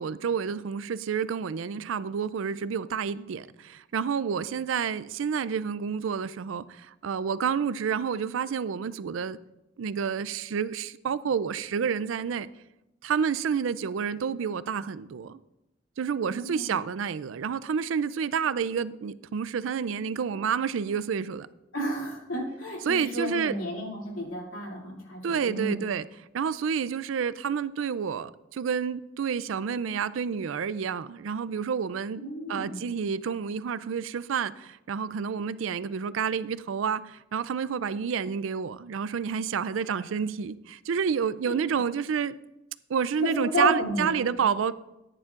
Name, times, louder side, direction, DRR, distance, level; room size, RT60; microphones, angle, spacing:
voice 1, 0.0-9.4 9.8-12.5 13.0-15.4 16.0-21.5 22.9-23.6 25.2-26.1 26.3-32.2 32.5-42.3 42.9-44.7, right 6 dB, 75° right, 0.4 m, -29 dB
voice 2, 16.3-16.8 21.7-25.8 32.2-32.8 39.9-40.0 41.5-41.6 43.2-44.1, equal, 80° left, 2.7 m, -32 dB
14.0 x 9.9 x 2.5 m
head